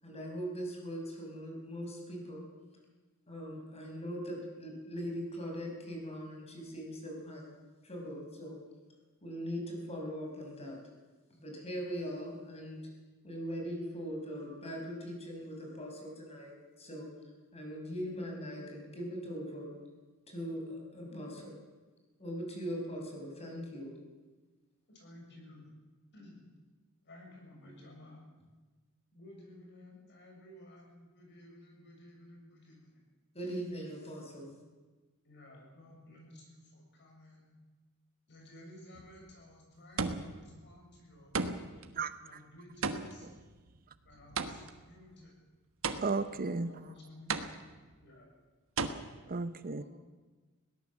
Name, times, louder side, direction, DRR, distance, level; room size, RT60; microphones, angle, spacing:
voice 1, 0.0-2.4 3.3-7.5 7.8-8.6 9.2-10.8 11.4-12.8 13.2-17.1 17.5-19.7 20.3-21.5 22.2-23.9 33.3-34.6 39.7-39.8, equal, 30° left, 1 dB, 5.7 m, -40 dB
voice 2, 21.1-21.4 24.9-25.7 26.1-26.4 27.0-28.2 29.1-33.0 34.2-34.3 35.2-37.5 38.3-41.3 42.2-43.3 44.1-45.3 46.7-47.3 48.0-48.3 49.7-49.9, left 1 dB, 55° left, 0 dB, 7.1 m, -54 dB
sound 1, 39.0-39.3 40.0-40.5 41.3-41.9 42.8-44.9 45.8-46.4 47.3-47.9 48.8-48.9, right 4 dB, 65° right, 1.4 m, -35 dB
voice 3, 42.0-42.4 43.2-43.3 46.0-46.7 49.3-49.8, right 4 dB, 40° right, 12 dB, 0.8 m, -34 dB
21.0 x 18.0 x 7.4 m, 1.3 s
head